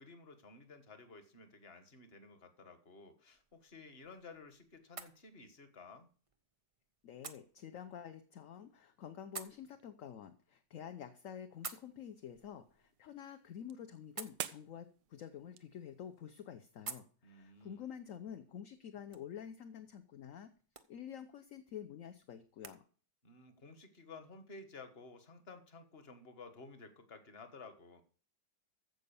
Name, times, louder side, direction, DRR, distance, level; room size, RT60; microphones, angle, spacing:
voice 1, 0.0-6.1 17.2-17.8 23.2-28.0, left 3 dB, 35° left, 8 dB, 1.5 m, -54 dB
sound 1, 3.3-22.8, right 4 dB, 50° right, 0.4 m, -55 dB
voice 2, 7.0-20.5 20.9-22.8, left 9 dB, 55° left, 8 dB, 1.1 m, -49 dB
sound 2, 11.5-16.6, right 11 dB, 90° right, 1.4 m, -51 dB
14.5 x 5.3 x 7.0 m, 0.42 s
omnidirectional pair, 1.9 m